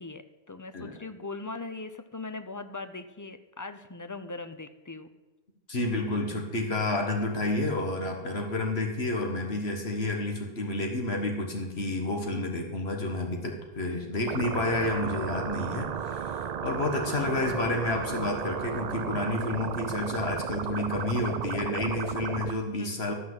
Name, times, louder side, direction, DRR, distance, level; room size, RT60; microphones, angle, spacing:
voice 1, 0.0-5.1 17.4-17.6 22.8-23.1, left 3 dB, 25° left, 9 dB, 0.5 m, -40 dB
voice 2, 5.7-23.1, left 2 dB, 80° left, 2 dB, 1.8 m, -30 dB
sound 1, 14.3-22.5, right 8 dB, 50° right, 0.5 m, -34 dB
12.5 x 5.7 x 7.9 m, 1.1 s
omnidirectional pair, 1.1 m